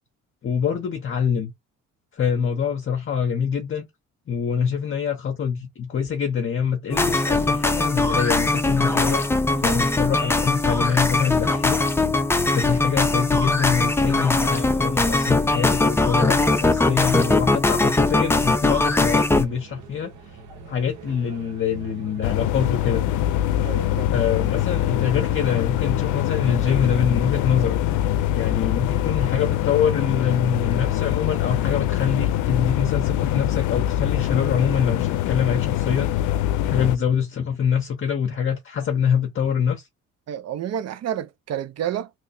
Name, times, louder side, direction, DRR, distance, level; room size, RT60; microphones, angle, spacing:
voice 1, 0.4-1.5 2.1-3.9 4.3-9.2 9.6-11.8 12.5-20.1 20.7-23.0 24.1-36.1 36.6-39.9, left 7 dB, 45° left, 0.7 m, -25 dB
sound 1, 6.9-19.5, left 2 dB, 10° left, 0.4 m, -21 dB
voice 2, 9.5-9.8 23.6-24.1 40.3-42.1, right 10 dB, 55° right, 0.6 m, -30 dB
sound 2, 19.1-25.7, right 4 dB, 75° right, 1.2 m, -43 dB
sound 3, 22.2-37.0, left 13 dB, 80° left, 0.5 m, -23 dB
3.1 x 2.1 x 4.0 m
cardioid pair, 90°, 30 cm